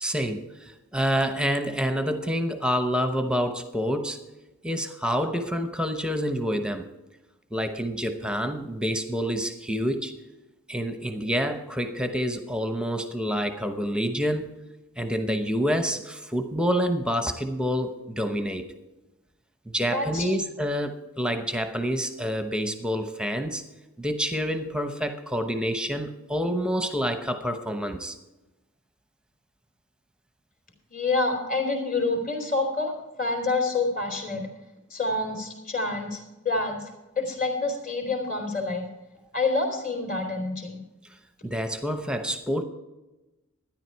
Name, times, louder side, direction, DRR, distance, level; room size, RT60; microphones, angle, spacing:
voice 1, 0.0-4.2 4.6-6.9 7.5-10.1 10.7-14.5 15.0-18.6 19.7-23.6 24.0-28.2 41.4-42.6, equal, 5° right, 7 dB, 0.8 m, -27 dB
voice 2, 19.7-20.3 30.9-32.9 33.2-34.4 34.9-36.9 37.2-38.8 39.3-40.8, left 3 dB, 40° left, 2 dB, 2.9 m, -27 dB
12.5 x 10.5 x 4.6 m, 1.0 s
head